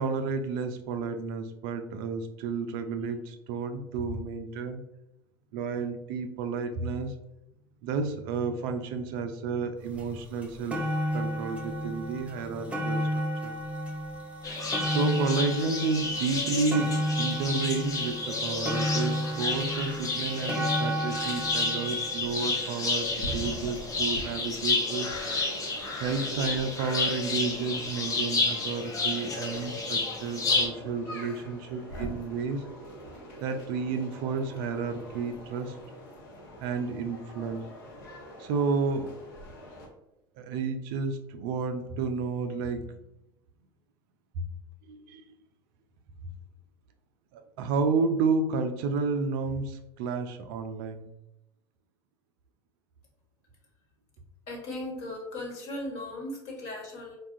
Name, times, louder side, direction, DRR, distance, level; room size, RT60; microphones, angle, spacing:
voice 1, 0.0-4.8 5.5-7.1 7.8-10.9 11.1-13.5 14.9-25.1 26.0-32.6 33.4-35.8 36.6-37.7 38.4-39.2 40.4-43.0 44.4-44.5 44.9-45.2 47.3-51.1, right 4 dB, 60° right, 7 dB, 0.4 m, -31 dB
sound 1, 10.0-10.1 10.4-23.6 24.4-24.5, equal, 10° right, 0.6 m, -32 dB
sound 2, 14.4-30.7, left 3 dB, 30° left, 0.8 m, -31 dB
sound 3, 22.8-39.9, equal, 70° left, 0.8 m, -43 dB
voice 2, 54.5-57.2, left 1 dB, 55° left, -1 dB, 1.3 m, -37 dB
4.0 x 2.3 x 2.5 m, 0.88 s
hypercardioid pair, 80°, 13 cm